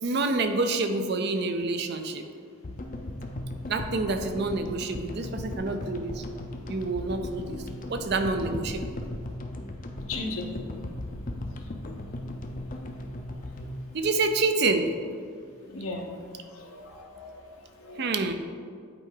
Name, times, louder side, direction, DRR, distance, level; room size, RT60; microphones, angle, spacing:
voice 1, 0.0-2.2 3.7-6.2 6.7-7.6 7.9-8.9 13.9-14.9 18.0-18.3, right 3 dB, 50° right, 7 dB, 0.5 m, -27 dB
sound 1, 2.6-15.0, left 1 dB, 40° left, 0.5 m, -37 dB
voice 2, 10.1-10.5 15.7-16.1 16.5-17.4 17.8-18.3, left 3 dB, 75° left, 2 dB, 0.9 m, -37 dB
8.9 x 4.6 x 3.8 m, 2.2 s
head